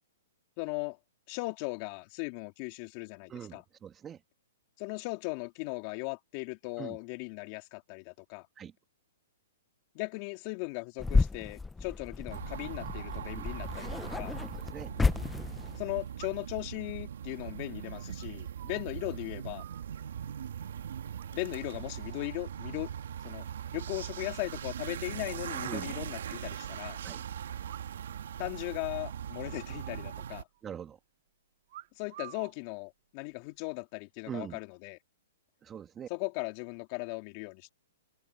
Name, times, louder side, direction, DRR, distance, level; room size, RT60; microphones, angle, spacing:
voice 1, 0.6-1.0 1.3-3.6 4.8-8.5 9.9-14.4 15.8-19.6 21.3-22.9 23.2-27.0 28.4-30.5 32.0-35.0 36.1-37.7, left 27 dB, 35° left, 3.3 m, -38 dB
voice 2, 3.3-4.2 6.8-7.0 8.6-8.7 13.3-13.5 14.5-14.9 25.6-26.0 27.0-27.2 30.6-31.0 34.3-34.6 35.6-36.1, right 8 dB, 15° right, 2.1 m, -42 dB
sound 1, 11.0-15.9, left 3 dB, 5° left, 0.8 m, -32 dB
sound 2, 12.3-30.4, right 9 dB, 70° right, 2.4 m, -40 dB
sound 3, 16.2-16.6 17.0-19.1 19.3-20.4 21.2-21.7 22.0-22.4 22.7-23.3 23.6-23.7 23.9-24.0 24.3-24.4 24.7-24.8 25.5-26.5 27.6-28.2 28.5-28.6 28.9-29.2 29.7-30.6 31.7-32.6 33.3-33.7, right 15 dB, 50° right, 2.9 m, -53 dB
hypercardioid pair, 150°, 0 cm